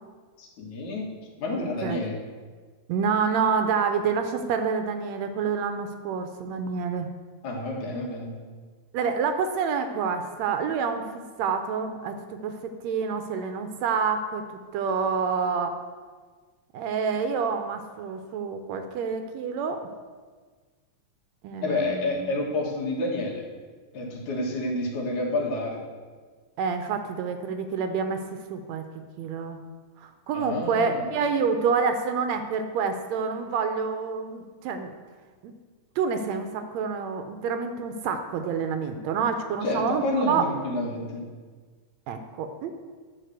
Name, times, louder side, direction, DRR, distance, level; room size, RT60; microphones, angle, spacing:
voice 1, 0.4-1.1 1.4-2.2 7.4-8.3 21.6-23.4 23.9-25.8 30.3-31.1 39.6-41.3, left 2 dB, 85° left, -2 dB, 3.2 m, -29 dB
voice 2, 2.9-7.1 8.9-14.4 14.7-15.8 16.7-19.8 21.4-22.3 26.6-28.2 28.5-28.8 29.2-29.6 30.0-34.9 35.4-35.5 36.0-40.4 42.1-42.7, right 5 dB, 80° right, 7 dB, 1.8 m, -28 dB
11.5 x 4.1 x 7.8 m, 1.5 s
omnidirectional pair, 3.4 m